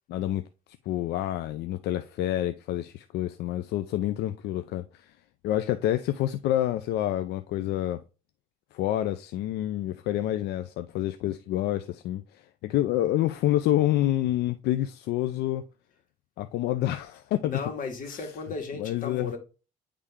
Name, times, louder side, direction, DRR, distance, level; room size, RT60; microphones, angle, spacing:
voice 1, 0.1-0.4 0.9-5.1 5.4-8.0 8.7-15.7 16.4-17.6 18.1-18.3 18.8-19.3, left 13 dB, 80° left, 0.5 m, -28 dB
voice 2, 17.4-19.4, left 4 dB, 55° left, 2.1 m, -35 dB
9.8 x 3.4 x 3.6 m
cardioid pair, 110°, 17 cm